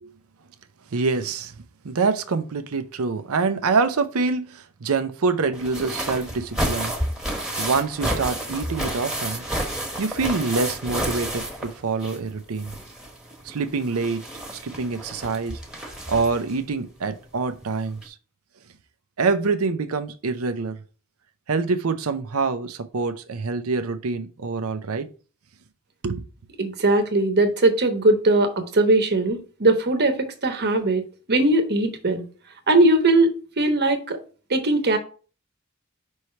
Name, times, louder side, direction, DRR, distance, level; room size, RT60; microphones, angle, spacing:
voice 1, 0.9-1.5 1.8-7.0 7.6-9.4 10.0-12.7 13.4-14.2 14.6-15.6 16.1-18.1 19.2-20.8 21.5-25.1 26.0-26.2, right 4 dB, 80° right, 0.6 m, -25 dB
sound 1, 5.5-12.3 12.6-16.5 17.6-17.7 18.0-18.1, right 1 dB, 5° right, 1.2 m, -30 dB
voice 2, 26.6-32.2 32.7-33.3 33.6-34.2 34.5-35.0, right 2 dB, 50° right, 1.1 m, -20 dB
5.4 x 3.2 x 5.6 m
head